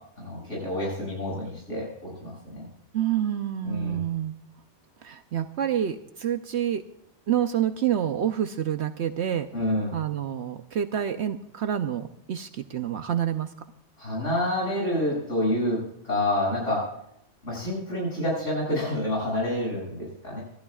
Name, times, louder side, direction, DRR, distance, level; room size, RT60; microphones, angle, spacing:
voice 1, 0.2-2.6 3.6-4.0 9.5-9.9 14.0-15.8 16.0-16.8 17.4-20.4, left 1 dB, 75° left, -4 dB, 7.5 m, -28 dB
voice 2, 2.9-4.3 5.0-6.8 7.3-9.5 9.9-13.5, right 10 dB, 65° right, 8 dB, 0.9 m, -28 dB
26.0 x 12.0 x 2.4 m, 0.76 s
omnidirectional pair, 1.3 m